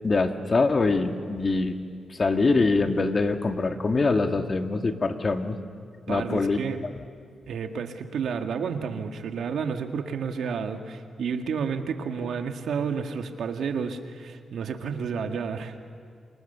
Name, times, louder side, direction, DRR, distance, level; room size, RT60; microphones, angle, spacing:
voice 1, 0.0-1.8 2.1-5.6 6.1-6.6, left 3 dB, 40° left, 6 dB, 2.0 m, -24 dB
voice 2, 6.1-6.8 7.5-15.8, right 6 dB, 80° right, 5 dB, 1.9 m, -31 dB
29.5 x 26.0 x 6.9 m, 2.2 s
cardioid pair, 80°, 0 cm